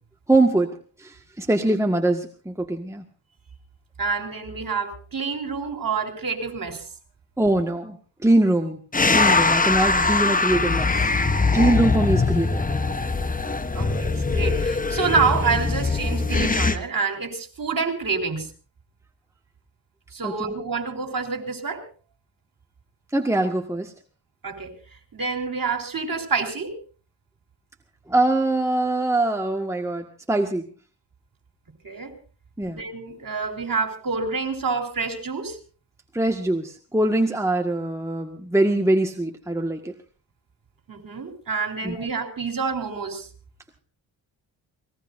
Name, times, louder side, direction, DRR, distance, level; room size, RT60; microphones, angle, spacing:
voice 1, 0.3-0.7 1.0-3.0 7.4-8.0 8.2-8.8 9.1-10.9 11.5-12.6 20.2-20.5 23.1-23.9 28.1-30.7 32.6-32.8 36.1-39.9 41.8-42.0, right 2 dB, 5° right, 2 dB, 1.7 m, -22 dB
voice 2, 4.0-6.9 13.7-18.5 20.1-21.8 24.4-24.7 25.1-26.8 31.8-32.1 32.7-35.6 40.9-43.3, right 5 dB, 45° right, 5 dB, 4.0 m, -27 dB
sound 1, 8.9-16.8, left 3 dB, 15° left, 1.0 m, -22 dB
25.5 x 19.0 x 2.7 m, 0.38 s
cardioid pair, 60°, 47 cm